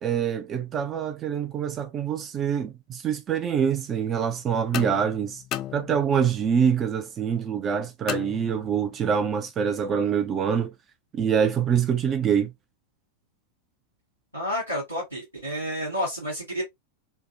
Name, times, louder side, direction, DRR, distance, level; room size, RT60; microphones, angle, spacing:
voice 1, 0.0-5.4 5.7-10.7 11.1-12.5, right 7 dB, 25° right, 0.5 m, -25 dB
sound 1, 4.7-6.4 8.1-9.0, left 12 dB, 35° left, 0.4 m, -35 dB
voice 2, 14.3-16.6, equal, 85° right, 2.0 m, -30 dB
4.5 x 2.2 x 2.6 m
figure-of-eight pair, 90°, 0 cm